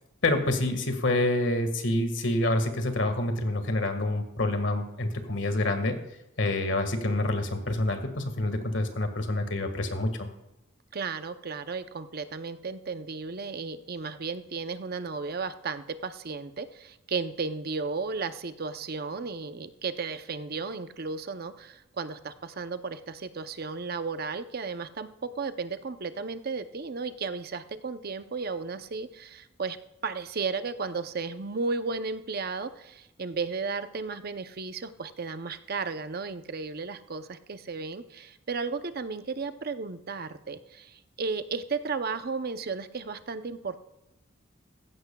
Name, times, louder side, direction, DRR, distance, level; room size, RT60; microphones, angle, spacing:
voice 1, 0.2-6.0 6.4-10.3, left 2 dB, 70° left, 7 dB, 1.8 m, -27 dB
voice 2, 10.9-29.8 30.0-43.8, right 4 dB, 50° right, 10 dB, 0.7 m, -34 dB
15.5 x 15.5 x 2.3 m, 0.92 s
head